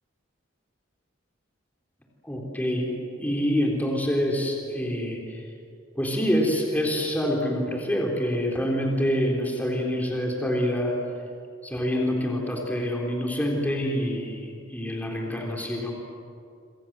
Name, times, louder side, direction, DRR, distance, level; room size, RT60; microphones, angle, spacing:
voice 1, 2.2-2.9 3.2-5.4 6.0-10.9 11.6-15.9, equal, 10° left, -1 dB, 3.8 m, -26 dB
27.5 x 26.5 x 7.5 m, 2.5 s
head